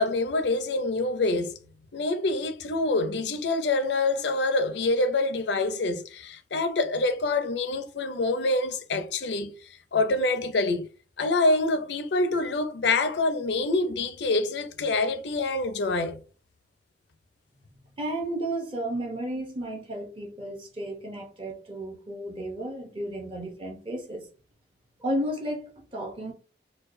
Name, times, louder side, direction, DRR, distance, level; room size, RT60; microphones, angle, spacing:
voice 1, 0.0-1.6 1.9-10.9 11.2-16.2, left 2 dB, 70° left, 0.5 m, -26 dB
voice 2, 18.0-24.3 25.0-26.3, right 1 dB, 30° right, 0.7 m, -33 dB
4.5 x 2.2 x 2.6 m
head